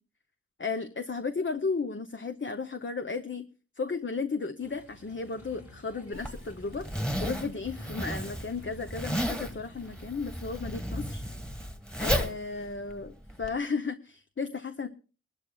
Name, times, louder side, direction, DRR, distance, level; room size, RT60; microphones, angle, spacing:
voice 1, 0.6-3.4 3.8-11.2 12.0-14.9, left 4 dB, 40° left, 8 dB, 0.7 m, -34 dB
sound 1, 4.6-10.1, right 1 dB, 80° left, 4.3 m, -51 dB
Zipper (clothing), 6.1-13.5, equal, 5° left, 1.5 m, -33 dB
21.5 x 12.5 x 2.3 m, 0.36 s
wide cardioid pair, 55°, 29 cm